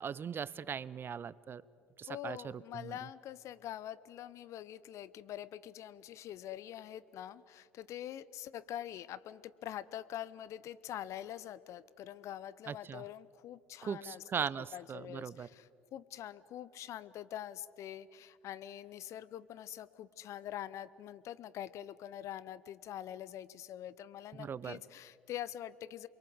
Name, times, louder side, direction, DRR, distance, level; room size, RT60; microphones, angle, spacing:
voice 1, 0.0-1.6 2.0-3.0 12.7-13.0 13.8-15.5 24.4-24.8, right 7 dB, 35° right, 20 dB, 0.7 m, -39 dB
voice 2, 2.1-14.2 14.7-26.1, left 11 dB, 50° left, 18 dB, 0.8 m, -45 dB
28.5 x 22.5 x 8.0 m, 2.4 s
figure-of-eight pair, 60°, 6 cm